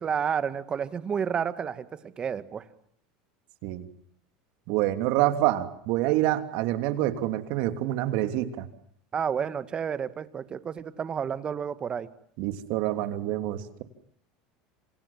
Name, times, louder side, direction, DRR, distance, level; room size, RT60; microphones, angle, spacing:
voice 1, 0.0-2.6 9.1-12.1, right 7 dB, 30° right, 13 dB, 1.8 m, -30 dB
voice 2, 4.7-8.7 12.4-13.8, right 14 dB, 65° right, 8 dB, 3.2 m, -27 dB
28.0 x 27.0 x 7.4 m, 0.65 s
supercardioid pair, 120°, 3 cm